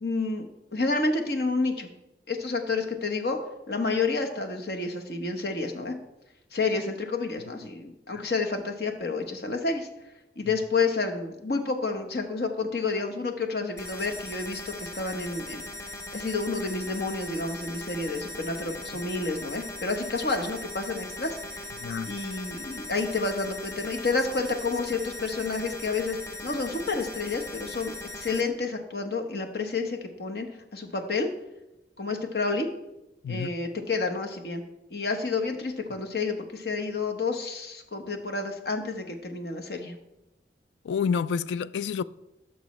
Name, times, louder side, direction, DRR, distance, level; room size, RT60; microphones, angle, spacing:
voice 1, 0.0-1.9 2.3-3.4 3.7-5.9 6.5-9.9 10.4-15.6 16.1-21.7 22.1-30.5 30.7-31.3 32.0-32.7 33.3-34.6 34.9-40.0, left 3 dB, 60° left, 1.0 m, -30 dB
sound 1, 13.8-28.4, left 2 dB, 15° left, 0.8 m, -39 dB
voice 2, 21.8-22.1 33.2-33.5 40.8-42.0, left 6 dB, 85° left, 0.3 m, -29 dB
13.5 x 6.1 x 3.1 m
head